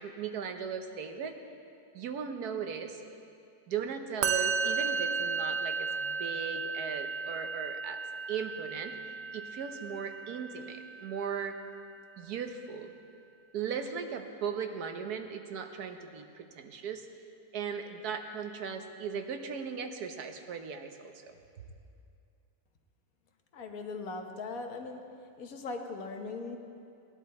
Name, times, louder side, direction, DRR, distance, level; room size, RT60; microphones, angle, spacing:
voice 1, 0.0-1.3 1.9-3.0 3.7-8.0 8.3-8.9 9.3-11.5 12.2-12.9 13.5-17.1 17.5-21.3, right 6 dB, 85° right, 6 dB, 1.4 m, -37 dB
Musical instrument, 4.2-11.5, right 5 dB, 60° right, 0.7 m, -34 dB
voice 2, 23.5-25.0 25.4-26.6, left 3 dB, 70° left, 4 dB, 1.4 m, -39 dB
18.0 x 10.5 x 4.3 m, 2.5 s
omnidirectional pair, 1.6 m